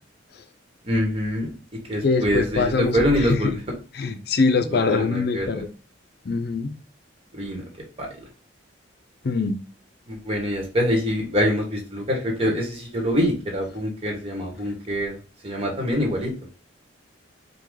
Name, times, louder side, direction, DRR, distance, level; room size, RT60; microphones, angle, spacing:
voice 1, 0.8-3.6 4.6-5.6 7.3-7.6 8.0-8.3 10.1-16.3, equal, 30° right, 1.2 m, -25 dB
voice 2, 2.0-3.0 3.4-3.5 4.0-5.7 6.3-6.7 9.2-9.6, left 4 dB, 55° left, 0.5 m, -23 dB
4.8 x 2.3 x 3.6 m
head